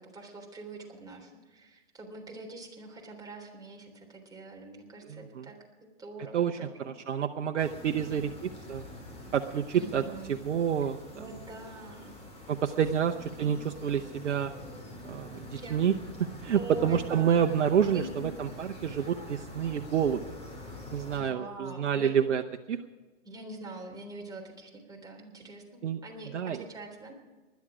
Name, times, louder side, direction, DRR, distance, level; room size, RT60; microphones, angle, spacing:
voice 1, 0.0-6.9 7.8-8.4 9.7-10.4 11.1-12.3 13.4-13.6 15.4-15.8 16.5-17.4 17.9-18.4 18.9-19.1 21.2-22.1 23.3-27.1, right 2 dB, 10° right, -1 dB, 3.5 m, -44 dB
voice 2, 5.1-5.5 6.3-8.8 9.3-10.0 10.3-11.2 12.5-13.6 13.8-14.5 15.0-15.9 16.4-20.2 20.9-22.4 22.7-22.8 25.8-26.0 26.3-26.6, right 8 dB, 80° right, 4 dB, 0.9 m, -28 dB
sound 1, 7.6-21.2, left 1 dB, 15° left, 5.3 m, -45 dB
20.0 x 11.5 x 5.0 m, 1.3 s
hypercardioid pair, 125°, 36 cm